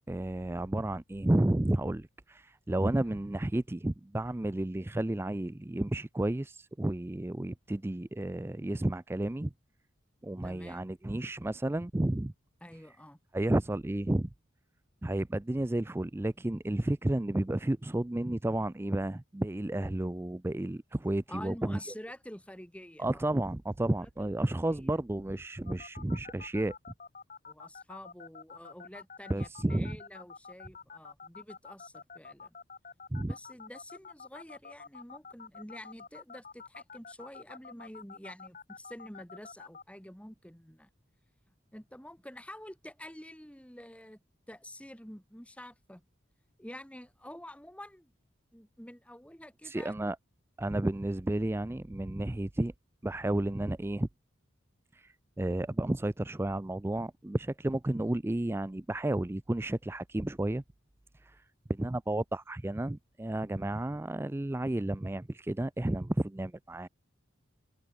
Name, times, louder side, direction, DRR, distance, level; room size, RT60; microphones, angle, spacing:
voice 1, 0.0-9.5 10.2-12.3 13.3-14.3 15.0-21.8 23.0-26.7 29.3-30.0 33.1-33.3 49.6-50.2 50.6-52.7 53.0-54.1 54.9-60.6 61.1-61.4 61.7-66.9, right 1 dB, 10° right, 0.4 m, -32 dB
voice 2, 10.4-10.8 12.6-13.2 21.3-23.2 23.9-24.1 24.5-24.9 27.5-32.6 33.2-40.9 41.7-44.2 44.5-46.0 46.6-48.1 48.5-49.9, left 1 dB, 5° left, 4.2 m, -48 dB
sound 1, 25.7-39.8, left 5 dB, 40° left, 3.6 m, -47 dB
head